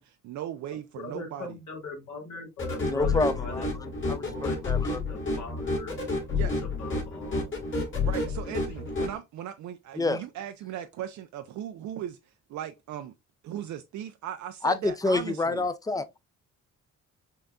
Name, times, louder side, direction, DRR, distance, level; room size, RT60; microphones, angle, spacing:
voice 1, 0.0-1.6 6.3-6.5 8.0-12.2 12.5-13.1 13.4-15.7, right 11 dB, 70° right, 0.5 m, -38 dB
voice 2, 0.9-6.0 6.3-7.5, left 3 dB, 75° left, 2.0 m, -40 dB
sound 1, 2.6-9.1, left 3 dB, 40° left, 1.7 m, -30 dB
voice 3, 2.9-3.6 4.1-5.0 10.0-10.2 14.6-16.2, left 3 dB, 10° left, 0.5 m, -28 dB
5.6 x 2.6 x 2.3 m
cardioid pair, 90°, 30 cm